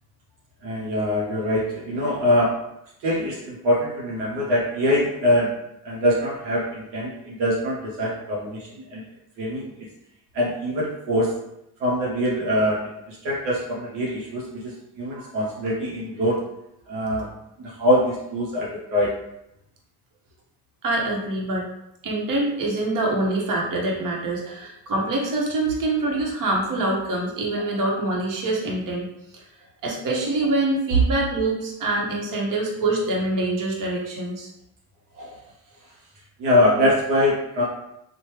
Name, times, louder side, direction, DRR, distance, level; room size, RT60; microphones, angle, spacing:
voice 1, 0.6-2.6 3.0-5.5 5.8-9.0 9.4-9.7 10.3-11.3 11.8-16.4 16.9-17.3 17.6-19.2 35.2-35.4 36.4-37.6, left 1 dB, 75° right, -4 dB, 0.8 m, -23 dB
voice 2, 20.8-21.7 22.0-29.1 29.3-29.4 29.8-34.5, right 2 dB, 50° right, -1 dB, 1.0 m, -25 dB
3.0 x 2.2 x 3.1 m, 0.82 s
hypercardioid pair, 60°, 42 cm